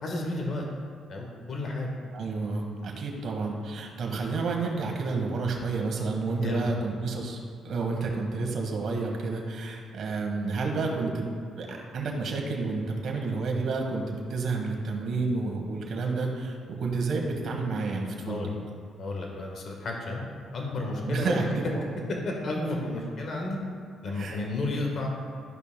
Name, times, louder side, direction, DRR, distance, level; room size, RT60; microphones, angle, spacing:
voice 1, 0.0-0.6 1.1-1.9 6.4-6.6 18.2-18.5 19.0-20.2 20.5-21.4 22.2-23.6 24.0-25.1, left 2 dB, 55° left, 0 dB, 1.3 m, -32 dB
voice 2, 2.1-7.4 7.6-11.3 11.5-18.4 21.1-21.9 24.1-24.4, right 3 dB, 65° right, 1 dB, 1.2 m, -30 dB
12.0 x 5.5 x 2.2 m, 2.2 s
cardioid pair, 90°, 0 cm